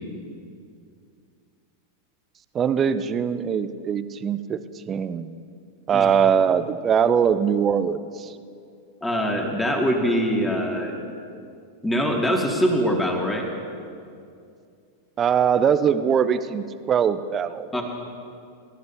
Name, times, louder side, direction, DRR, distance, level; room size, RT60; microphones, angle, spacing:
voice 1, 2.5-4.6 4.9-5.3 5.9-8.3 15.2-17.7, right 7 dB, 25° right, 13 dB, 0.6 m, -22 dB
voice 2, 9.0-10.9 11.8-13.5 17.7-17.8, equal, 10° left, 0 dB, 2.3 m, -23 dB
26.5 x 14.0 x 2.8 m, 2.4 s
figure-of-eight pair, 90°, 0 cm